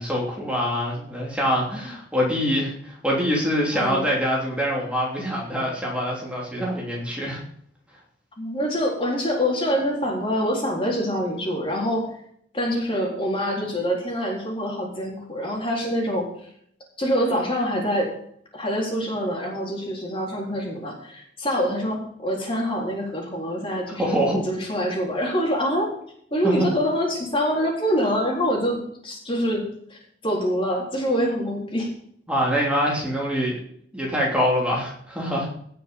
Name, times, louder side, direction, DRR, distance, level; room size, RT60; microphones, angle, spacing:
voice 1, 0.0-7.4 23.9-24.4 26.4-26.7 32.3-33.6 33.9-35.5, equal, 5° right, -4 dB, 3.2 m, -24 dB
voice 2, 3.7-4.1 8.4-12.1 12.5-16.5 17.0-18.1 18.5-25.9 26.3-31.9, equal, 30° left, -1 dB, 4.0 m, -25 dB
17.5 x 6.8 x 5.4 m, 0.64 s
head